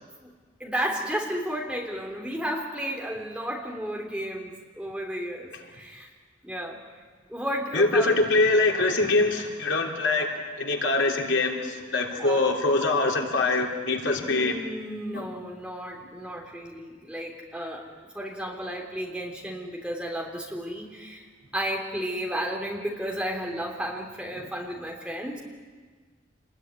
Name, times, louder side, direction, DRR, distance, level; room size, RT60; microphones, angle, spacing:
voice 1, 0.6-6.1 6.4-6.8 7.3-8.2 12.2-12.5 14.2-17.9 18.1-21.3 21.5-25.4, equal, 5° right, 0 dB, 3.4 m, -33 dB
voice 2, 7.7-14.6 15.1-15.2, left 2 dB, 75° left, 1 dB, 3.3 m, -24 dB
28.0 x 21.0 x 9.7 m, 1.5 s
head